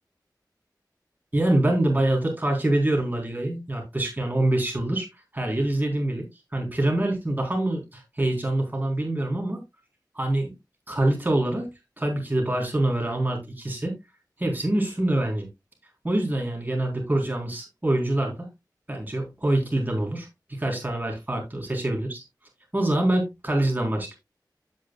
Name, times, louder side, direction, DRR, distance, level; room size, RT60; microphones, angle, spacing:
voice 1, 1.3-5.1 5.3-6.2 6.5-9.6 10.2-10.5 10.9-11.7 12.0-13.9 14.4-15.5 16.0-18.5 18.9-22.2 22.7-24.2, right 1 dB, 25° right, 3.8 m, -25 dB
15.5 x 5.2 x 2.3 m
wide cardioid pair, 80°, 7 cm